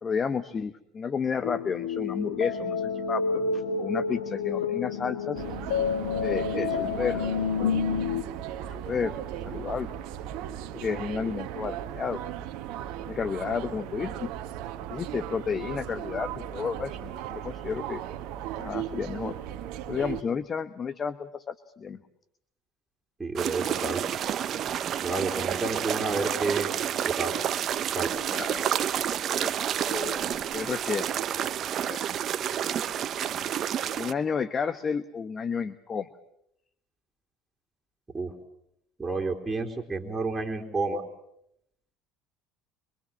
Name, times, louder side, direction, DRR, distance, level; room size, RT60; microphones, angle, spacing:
voice 1, 0.0-3.2 3.5-5.4 6.2-7.8 8.6-9.2 9.5-9.9 10.7-12.2 13.1-14.3 14.9-18.0 18.6-19.4 19.9-22.0 28.3-28.7 29.3-31.1 31.8-32.0 34.0-36.1, left 6 dB, 35° left, 13 dB, 1.1 m, -32 dB
sound 1, 1.4-8.2, left 5 dB, 85° left, 1.7 m, -29 dB
sound 2, 5.4-20.2, right 11 dB, 70° right, 1.4 m, -37 dB
voice 2, 23.2-24.0 25.0-26.7 27.2-27.3 27.9-28.1 38.1-38.3 39.0-41.0, right 3 dB, 15° right, 0 dB, 3.5 m, -30 dB
sound 3, 23.4-34.1, right 10 dB, 50° right, 0.9 m, -29 dB
24.5 x 24.0 x 7.2 m, 0.77 s
hypercardioid pair, 80°, 0 cm